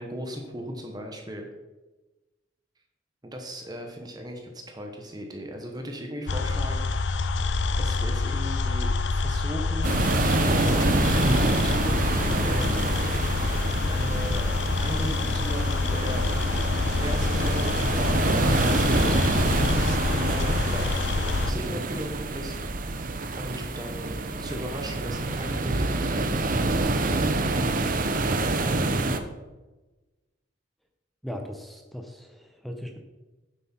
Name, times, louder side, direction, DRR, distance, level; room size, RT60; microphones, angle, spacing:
voice 1, 0.0-1.5 3.2-6.9 7.8-10.0 10.7-12.7 13.8-14.5 14.8-16.2 17.0-19.2 20.1-22.6 23.3-27.0, equal, 20° right, 2 dB, 1.1 m, -37 dB
sound 1, 6.3-21.5, left 3 dB, 65° left, 0.6 m, -27 dB
sound 2, 9.8-29.2, right 2 dB, 45° right, 0.8 m, -26 dB
voice 2, 21.5-21.8 31.2-33.0, equal, ahead, 3 dB, 0.8 m, -38 dB
9.4 x 7.9 x 4.4 m, 1.1 s
head